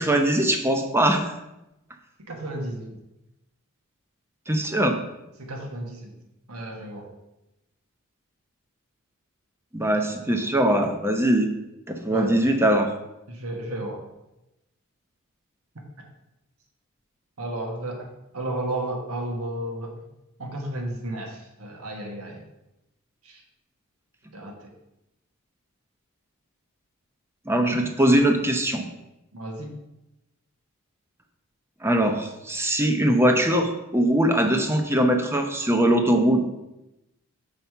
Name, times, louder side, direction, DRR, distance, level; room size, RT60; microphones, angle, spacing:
voice 1, 0.0-1.3 4.5-5.0 9.7-11.5 11.9-12.9 27.5-28.8 31.8-36.5, right 1 dB, 10° right, 5 dB, 0.7 m, -21 dB
voice 2, 2.2-3.0 5.4-6.1 6.5-7.1 12.1-12.3 13.3-14.0 17.4-18.1 18.3-19.9 20.4-22.4 23.2-23.4 24.3-24.5 29.3-29.7, right 1 dB, 80° right, 1 dB, 1.4 m, -33 dB
5.7 x 4.8 x 5.6 m, 0.91 s
head